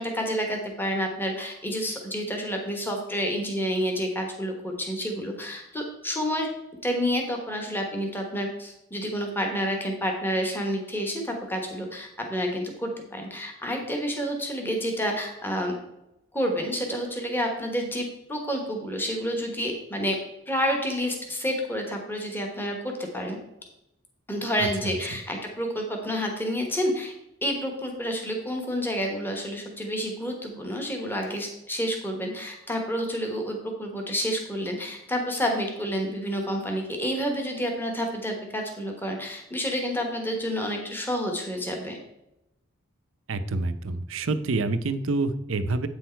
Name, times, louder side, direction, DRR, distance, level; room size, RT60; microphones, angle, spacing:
voice 1, 0.0-6.5 6.8-15.7 16.3-20.2 20.5-23.4 24.3-27.1 27.4-42.0, equal, 10° left, 2 dB, 1.2 m, -29 dB
voice 2, 43.3-45.9, right 3 dB, 60° right, 10 dB, 0.6 m, -27 dB
8.5 x 6.3 x 4.5 m, 0.89 s
head